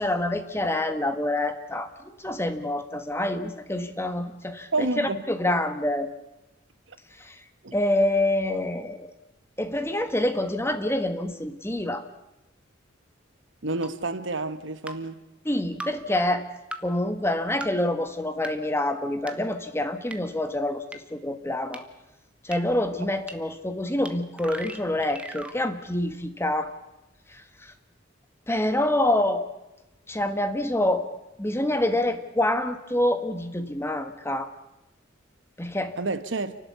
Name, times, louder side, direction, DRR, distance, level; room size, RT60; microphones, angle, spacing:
voice 1, 0.0-1.9 2.2-6.1 7.2-7.4 7.7-9.1 9.6-12.1 15.4-16.5 16.8-21.8 22.4-26.7 27.3-27.7 28.5-29.5 30.1-31.1 31.4-34.5 35.6-36.0, left 1 dB, 15° left, 1.4 m, -26 dB
voice 2, 4.7-5.2 7.6-7.7 13.6-15.2 36.0-36.6, right 3 dB, 70° right, 1.3 m, -29 dB
sound 1, 13.8-13.9 14.9-15.0 15.8-15.9 16.7-16.8 17.6-17.7 18.4-18.5 19.3-19.4 20.1-20.2 20.9-21.0 21.7-21.8 22.5-22.6 23.3-23.4 24.1-24.2 24.4-25.6, right 1 dB, 5° right, 1.3 m, -36 dB
30.0 x 12.0 x 8.3 m
head